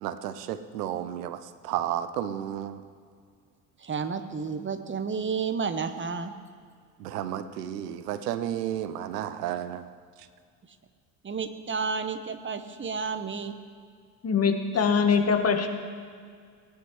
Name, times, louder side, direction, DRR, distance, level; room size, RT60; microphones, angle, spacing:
voice 1, 0.0-2.8 7.0-9.8, right 11 dB, 75° right, 12 dB, 0.7 m, -32 dB
voice 2, 3.8-6.3 11.2-13.5, right 5 dB, 25° right, 9 dB, 1.0 m, -31 dB
voice 3, 14.2-15.7, left 6 dB, 30° left, 6 dB, 1.3 m, -23 dB
18.5 x 9.9 x 3.2 m, 2.1 s
figure-of-eight pair, 55°, 48 cm